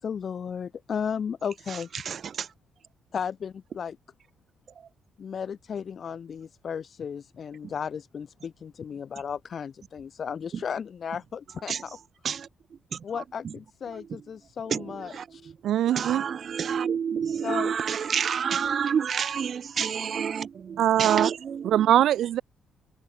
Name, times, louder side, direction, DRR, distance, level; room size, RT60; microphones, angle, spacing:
voice 1, 0.0-1.9 3.1-4.0 5.2-12.0 13.0-15.5 17.4-17.7, left 7 dB, 50° left, 3.7 m, -34 dB
voice 2, 2.0-2.5 11.7-11.8 12.2-12.5 14.7-14.8 15.1-15.2 15.9-21.8, right 7 dB, 50° right, 1.7 m, -28 dB
voice 3, 15.6-16.2 20.8-21.3 21.6-22.4, right 12 dB, 75° right, 0.6 m, -22 dB
cardioid pair, 90°, 0 cm